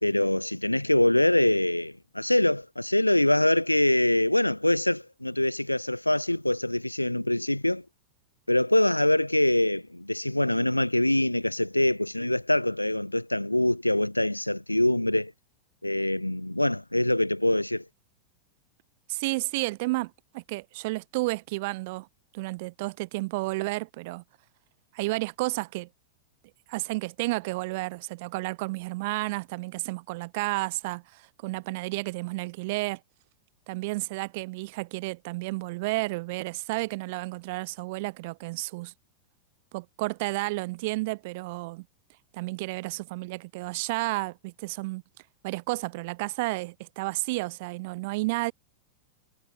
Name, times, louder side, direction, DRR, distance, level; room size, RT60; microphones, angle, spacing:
voice 1, 0.0-7.8 8.5-15.3 15.8-17.8, left 1 dB, 85° left, 0.8 m, -24 dB
voice 2, 19.1-22.1 22.3-24.2 24.9-25.9 26.7-33.0 33.7-38.9 39.7-41.9 42.3-45.0 45.4-48.5, right 23 dB, 50° right, 3.7 m, -31 dB
figure-of-eight pair, 90°, 0 cm